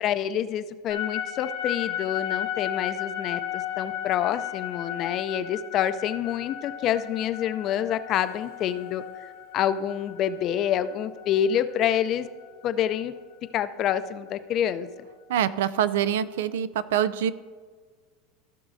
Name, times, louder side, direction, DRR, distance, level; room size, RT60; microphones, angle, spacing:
voice 1, 0.0-12.3 12.6-13.1 13.5-15.1, left 10 dB, 40° left, 12 dB, 0.5 m, -27 dB
sound 1, 0.9-13.1, left 11 dB, 80° left, 1.0 m, -35 dB
voice 2, 15.3-17.3, right 10 dB, 85° right, 16 dB, 0.4 m, -25 dB
15.0 x 6.1 x 2.7 m, 1.5 s
supercardioid pair, 130°, 0 cm